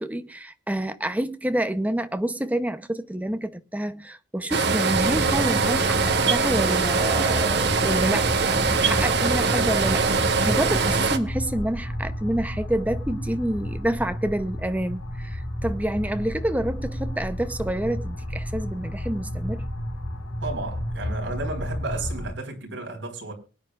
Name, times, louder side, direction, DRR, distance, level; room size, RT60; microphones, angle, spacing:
voice 1, 0.0-6.0 6.3-19.6, right 1 dB, 10° right, 0.7 m, -28 dB
sound 1, 4.5-11.2, right 4 dB, 55° right, 1.2 m, -22 dB
sound 2, 4.9-22.3, equal, 80° left, 4.4 m, -32 dB
voice 2, 20.4-23.3, right 2 dB, 70° right, 4.2 m, -33 dB
23.0 x 9.6 x 2.4 m
head